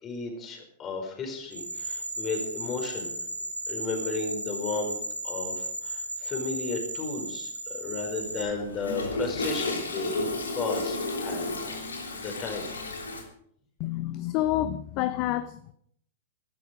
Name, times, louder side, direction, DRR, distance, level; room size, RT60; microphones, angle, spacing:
voice 1, 0.0-3.1 3.7-5.0 5.2-10.2 10.5-11.5 12.1-12.7, left 4 dB, 25° left, 3 dB, 4.9 m, -34 dB
sound 1, 1.5-8.4, right 2 dB, 85° right, 4.2 m, -35 dB
Toilet flush, 7.9-13.2, left 2 dB, 75° left, 3.2 m, -32 dB
voice 2, 13.8-15.7, left 13 dB, 40° left, 13 dB, 0.7 m, -28 dB
15.5 x 12.5 x 5.2 m, 0.67 s
figure-of-eight pair, 100°, 0 cm